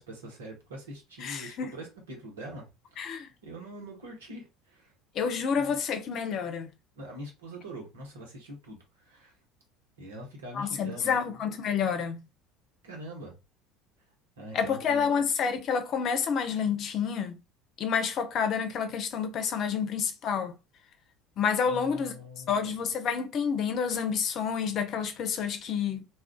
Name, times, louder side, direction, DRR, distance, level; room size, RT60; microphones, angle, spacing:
voice 1, 0.0-4.9 5.5-5.8 7.0-9.3 10.0-11.3 12.8-13.3 14.4-15.2 21.6-22.7, right 1 dB, 80° right, 1.1 m, -44 dB
voice 2, 1.2-1.7 3.0-3.3 5.1-6.7 10.5-12.2 14.5-17.4 17.8-20.5 21.4-22.1 22.5-26.0, left 6 dB, 50° left, 0.6 m, -29 dB
2.4 x 2.3 x 3.6 m
hypercardioid pair, 70°, 0 cm